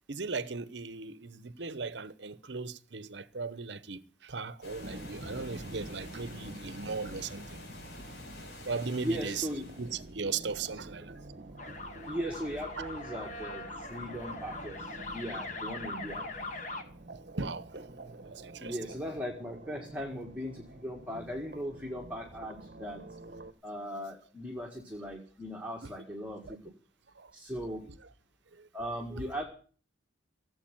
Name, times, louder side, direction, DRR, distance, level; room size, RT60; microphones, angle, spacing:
voice 1, 0.1-7.6 8.7-9.5 9.8-11.2 12.8-12.9 17.3-17.7 18.2-18.8 25.8-25.9 26.5-26.6 27.2-27.3 27.7-27.8 28.5-28.7 29.2-29.3, right 4 dB, 70° right, 1.0 m, -38 dB
sound 1, 4.6-10.2, left 1 dB, 60° left, 5.0 m, -48 dB
sound 2, 4.8-23.5, right 1 dB, 50° right, 1.1 m, -48 dB
voice 2, 8.9-9.6 12.1-16.3 18.6-23.0 23.6-26.7 27.3-27.8 28.7-29.4, equal, 5° right, 1.9 m, -38 dB
sound 3, 11.6-16.8, left 2 dB, 40° left, 2.0 m, -41 dB
16.5 x 8.1 x 9.0 m
head